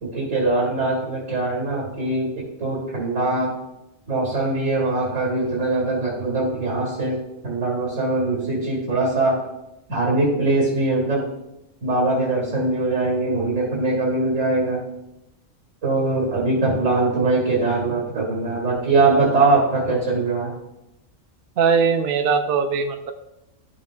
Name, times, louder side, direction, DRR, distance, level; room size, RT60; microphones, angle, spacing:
voice 1, 0.0-2.3 2.6-3.5 4.1-9.4 9.9-11.2 11.8-14.8 15.8-20.5, right 2 dB, 70° right, -3 dB, 2.5 m, -22 dB
voice 2, 21.6-23.1, right 6 dB, 55° right, 6 dB, 0.7 m, -20 dB
13.0 x 5.8 x 2.5 m, 0.90 s
omnidirectional pair, 1.4 m